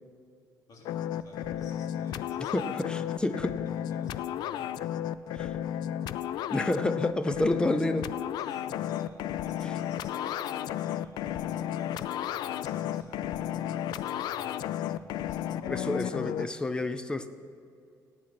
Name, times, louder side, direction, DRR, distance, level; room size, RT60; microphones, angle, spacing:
voice 1, 0.7-4.9 8.4-15.9, left 2 dB, 60° left, -1 dB, 3.1 m, -51 dB
sound 1, 0.9-16.5, left 11 dB, 85° left, 0.4 m, -33 dB
voice 2, 2.5-3.6 5.3-5.5 6.5-8.1 15.7-17.3, left 1 dB, 15° left, 11 dB, 0.7 m, -29 dB
18.0 x 8.7 x 6.0 m, 2.4 s
cardioid pair, 130°, 7 cm